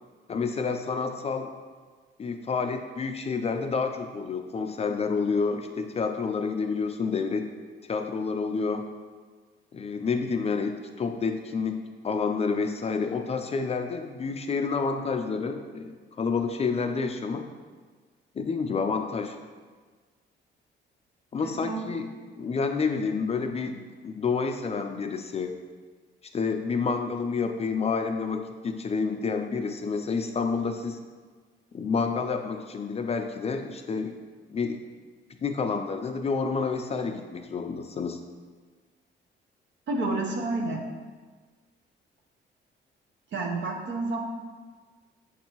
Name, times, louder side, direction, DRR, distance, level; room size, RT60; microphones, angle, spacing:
voice 1, 0.3-1.5 2.2-7.5 7.9-8.9 9.7-17.4 18.4-19.4 21.3-22.1 22.4-25.5 26.3-31.0 31.7-34.1 34.5-34.8 35.4-38.2, left 5 dB, 30° left, 6 dB, 0.3 m, -29 dB
voice 2, 21.4-21.9 39.9-40.8 43.3-44.2, right 2 dB, 65° right, 1 dB, 0.8 m, -30 dB
6.5 x 2.6 x 2.9 m, 1.4 s
cardioid pair, 90°, 20 cm